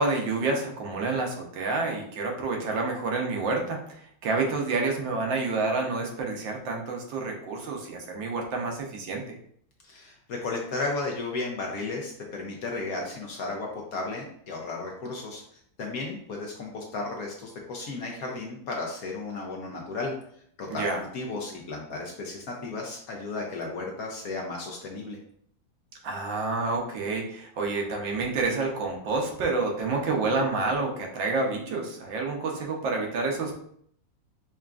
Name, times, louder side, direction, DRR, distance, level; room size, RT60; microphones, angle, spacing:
voice 1, 0.0-9.2 20.7-21.0 26.0-33.5, right 3 dB, 85° right, 1 dB, 1.5 m, -28 dB
voice 2, 9.8-20.1 20.6-25.2, left 3 dB, 65° left, 0 dB, 0.9 m, -34 dB
5.5 x 2.4 x 2.4 m, 0.66 s
omnidirectional pair, 2.0 m